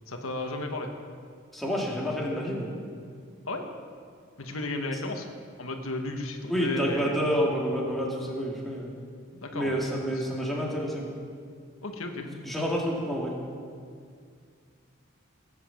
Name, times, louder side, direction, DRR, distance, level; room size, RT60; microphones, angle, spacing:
voice 1, 0.1-0.9 3.5-3.7 4.4-5.3 5.6-7.2 9.3-9.8 10.1-10.2 11.8-12.3, left 2 dB, 90° left, 4 dB, 1.5 m, -34 dB
voice 2, 1.5-2.8 6.5-8.9 9.5-11.1 12.3-13.4, equal, ahead, -4 dB, 2.3 m, -29 dB
18.0 x 8.4 x 7.4 m, 2.2 s
head